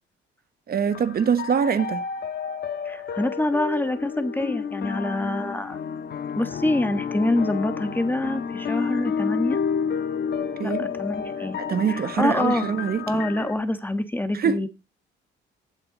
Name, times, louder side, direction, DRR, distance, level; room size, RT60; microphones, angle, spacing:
voice 1, 0.7-2.0 10.6-10.9 11.7-13.2 14.3-14.6, right 7 dB, 50° right, 1.1 m, -24 dB
sound 1, 0.9-13.5, left 7 dB, 55° left, 1.5 m, -30 dB
voice 2, 2.8-5.8 6.4-9.6 10.6-11.6 11.9-12.7 13.1-14.7, left 1 dB, 10° left, 1.4 m, -26 dB
15.0 x 8.6 x 3.9 m
cardioid pair, 90°, 20 cm